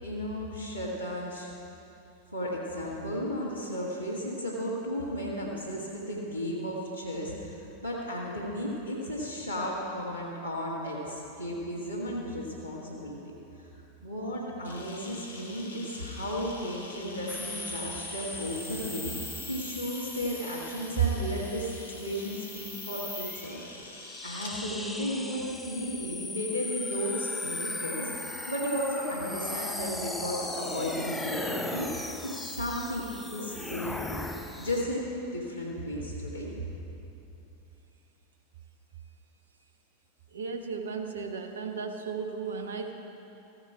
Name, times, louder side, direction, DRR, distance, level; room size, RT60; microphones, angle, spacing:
voice 1, 0.0-1.5 2.3-13.2 13.6-13.7 14.0-19.1 19.5-23.6 24.2-34.3 34.6-36.6, equal, 85° right, -6 dB, 1.8 m, -34 dB
Camera, 14.6-24.5, left 2 dB, 65° left, 1.3 m, -47 dB
sound 1, 17.3-34.8, left 2 dB, 10° left, 0.7 m, -38 dB
voice 2, 40.3-42.9, right 5 dB, 65° right, 4 dB, 1.1 m, -35 dB
15.0 x 8.7 x 4.9 m, 2.9 s
figure-of-eight pair, 90°, 0 cm